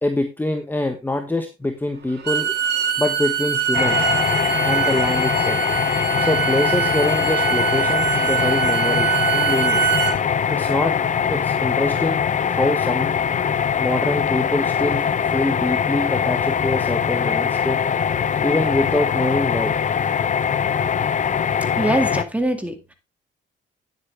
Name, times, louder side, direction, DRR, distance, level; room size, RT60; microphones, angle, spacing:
voice 1, 0.0-2.5 3.0-4.1 4.6-5.6 6.2-9.8 10.5-10.9 11.3-13.1 13.8-17.8 18.4-19.8, left 2 dB, 10° left, 6 dB, 1.2 m, -24 dB
Bowed string instrument, 2.1-10.2, right 10 dB, 55° right, 2.3 m, -23 dB
sound 1, 3.7-22.2, left 7 dB, 40° left, 0.6 m, -22 dB
voice 2, 21.7-22.9, right 1 dB, 5° right, 7 dB, 2.1 m, -23 dB
9.4 x 8.0 x 3.4 m, 0.26 s
cardioid pair, 90°, 20 cm